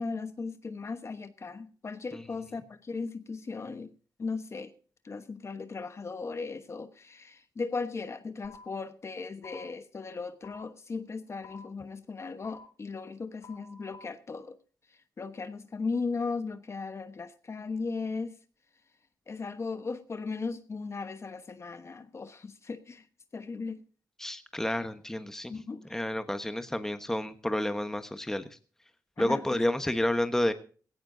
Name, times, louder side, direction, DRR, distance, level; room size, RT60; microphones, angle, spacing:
voice 1, 0.0-3.9 4.2-4.7 5.0-14.6 14.9-18.4 19.3-23.1 23.3-23.8 25.5-25.9 29.2-29.6, left 4 dB, 40° left, 1.2 m, -37 dB
sound 1, 8.4-8.6 9.4-9.6 10.4-10.6 11.4-11.6 12.4-12.6 13.4-14.0, left 5 dB, 70° left, 7.4 m, -50 dB
voice 2, 24.2-25.5 25.9-28.4 29.2-30.5, left 1 dB, 5° left, 1.2 m, -30 dB
18.0 x 17.0 x 2.7 m
cardioid pair, 100°, 7 cm